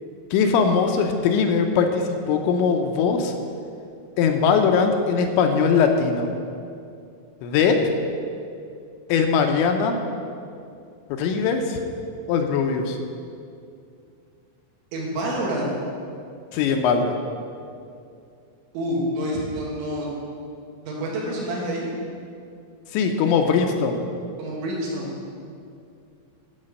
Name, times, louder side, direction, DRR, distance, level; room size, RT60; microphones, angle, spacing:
voice 1, 0.3-3.3 4.2-6.3 7.4-7.8 9.1-10.0 11.2-11.8 12.3-13.0 16.5-17.2 22.9-24.0, left 5 dB, 80° left, 4 dB, 3.0 m, -20 dB
voice 2, 14.9-15.7 18.7-20.1 20.8-21.9 24.4-25.1, right 1 dB, 80° right, -4 dB, 4.2 m, -27 dB
12.5 x 5.5 x 6.5 m, 2.4 s
omnidirectional pair, 5.4 m